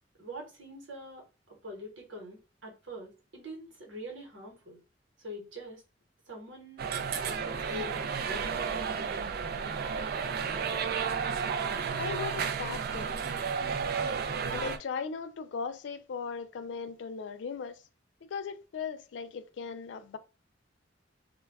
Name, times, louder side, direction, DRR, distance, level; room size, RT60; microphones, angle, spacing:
voice 1, 0.2-4.8 5.2-5.8 6.3-8.7, equal, 90° right, 1.0 m, -44 dB
sound 1, 6.8-14.8, right 6 dB, 55° right, 0.3 m, -32 dB
voice 2, 12.0-13.1 14.5-17.8 18.3-20.2, left 5 dB, 70° left, 0.3 m, -38 dB
2.2 x 2.1 x 3.3 m
head